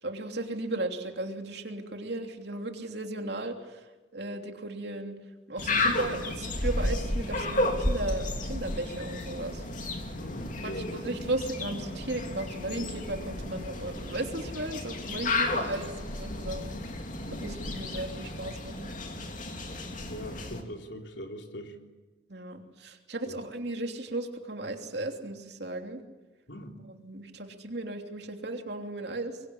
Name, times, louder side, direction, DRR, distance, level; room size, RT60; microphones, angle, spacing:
voice 1, 0.0-5.2 5.5-9.6 10.6-16.7 17.3-18.9 22.3-26.0 26.9-29.4, right 2 dB, 60° right, 4 dB, 3.1 m, -36 dB
sound 1, 5.6-20.6, left 2 dB, 40° left, 3.0 m, -33 dB
voice 2, 10.1-11.0 15.8-15.9 18.1-18.6 20.1-21.8 23.3-23.4 26.5-26.7, equal, 65° left, 3 dB, 3.6 m, -41 dB
25.0 x 22.5 x 10.0 m, 1.2 s
head